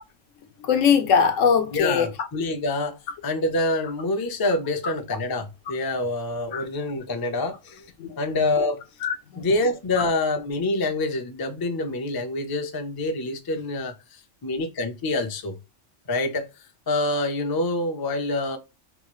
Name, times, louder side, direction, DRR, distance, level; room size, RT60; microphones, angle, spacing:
voice 1, 0.6-2.1 6.5-6.6 8.0-8.2 9.0-9.4, left 7 dB, 85° left, 1.1 m, -21 dB
voice 2, 1.7-7.8 8.2-8.8 9.4-13.9 14.4-15.6 16.1-16.5 16.9-18.6, left 2 dB, 35° left, 0.3 m, -26 dB
3.5 x 2.4 x 3.0 m
omnidirectional pair, 1.3 m